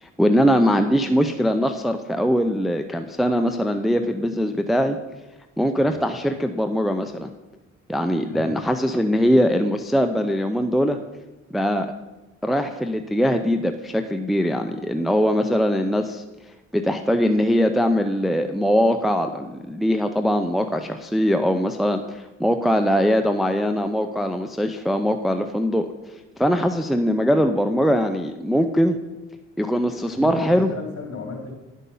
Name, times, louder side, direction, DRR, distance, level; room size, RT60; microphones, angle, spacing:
voice 1, 0.0-5.0 5.6-7.3 7.9-11.0 11.5-11.9 12.4-16.2 16.7-25.9 26.4-29.0 29.6-30.7, equal, ahead, 6 dB, 0.6 m, -21 dB
voice 2, 30.1-31.5, left 4 dB, 45° left, 1 dB, 3.2 m, -35 dB
10.5 x 8.3 x 5.5 m, 1.1 s
cardioid pair, 90°, 30 cm